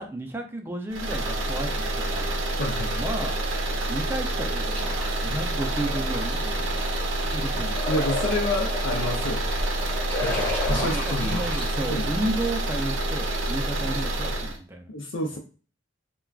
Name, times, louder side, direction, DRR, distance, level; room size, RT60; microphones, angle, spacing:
voice 1, 0.0-2.4 3.0-3.4 3.9-6.8 7.2-7.8 10.7-14.9 15.3-15.4, right 1 dB, 10° right, 2 dB, 0.4 m, -33 dB
sound 1, 0.9-14.6, right 1 dB, 85° right, 0.5 m, -28 dB
voice 2, 2.6-3.0 7.9-9.5 10.2-11.4 11.9-12.1 14.9-15.4, left 1 dB, 90° left, -1 dB, 0.5 m, -29 dB
sound 2, 4.7-11.7, left 1 dB, 10° left, 1.2 m, -33 dB
3.4 x 2.2 x 2.3 m, 0.37 s
head